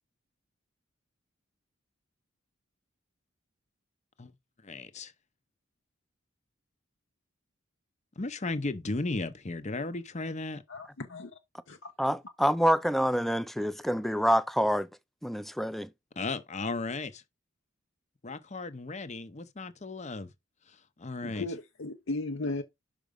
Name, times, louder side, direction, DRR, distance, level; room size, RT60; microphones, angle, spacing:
voice 1, 4.6-5.1 8.2-10.6 16.2-17.2 18.2-20.3 20.7-21.5, left 3 dB, 35° left, 0.8 m, -35 dB
voice 2, 10.7-11.4 11.7-11.9 21.2-22.6, left 2 dB, 65° left, 0.8 m, -36 dB
voice 3, 12.0-14.9 15.2-15.9, equal, ahead, 0.4 m, -27 dB
6.0 x 5.0 x 5.2 m
head